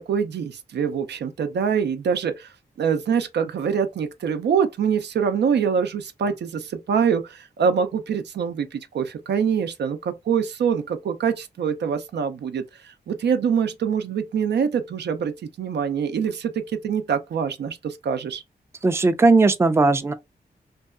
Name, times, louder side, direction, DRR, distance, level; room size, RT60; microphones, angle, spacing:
voice 1, 0.0-2.5 2.8-18.4, right 7 dB, 80° right, 0.4 m, -24 dB
voice 2, 18.8-20.1, right 3 dB, 15° right, 0.3 m, -17 dB
2.6 x 2.2 x 2.3 m
cardioid pair, 55°, 17 cm